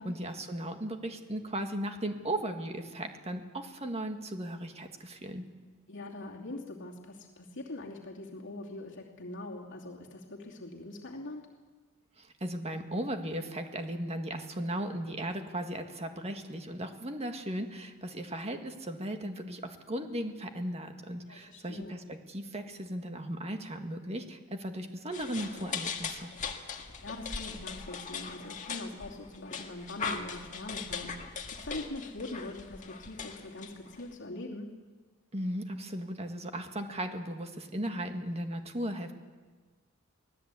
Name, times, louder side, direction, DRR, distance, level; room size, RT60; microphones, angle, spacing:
voice 1, 0.0-5.4 12.2-26.3 35.3-39.1, right 1 dB, 30° right, 5 dB, 1.8 m, -36 dB
voice 2, 5.9-11.5 21.3-22.0 27.0-34.7, left 2 dB, 60° left, -1 dB, 2.7 m, -42 dB
sound 1, 25.1-34.1, left 5 dB, 35° left, 1.9 m, -40 dB
24.0 x 17.0 x 8.4 m, 1.4 s
head